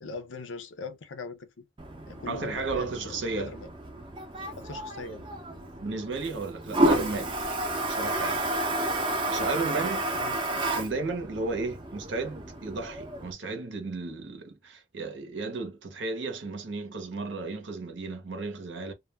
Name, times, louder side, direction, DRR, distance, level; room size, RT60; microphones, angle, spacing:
voice 1, 0.0-1.6 2.1-3.7 4.6-5.3 10.1-10.4, left 4 dB, 90° left, 0.5 m, -41 dB
Toilet flush, 1.8-13.3, right 1 dB, 25° right, 0.5 m, -31 dB
voice 2, 2.3-3.5 5.8-7.3 7.8-8.5 9.3-10.1 10.7-18.9, right 3 dB, 80° right, 0.8 m, -33 dB
2.3 x 2.1 x 3.2 m
head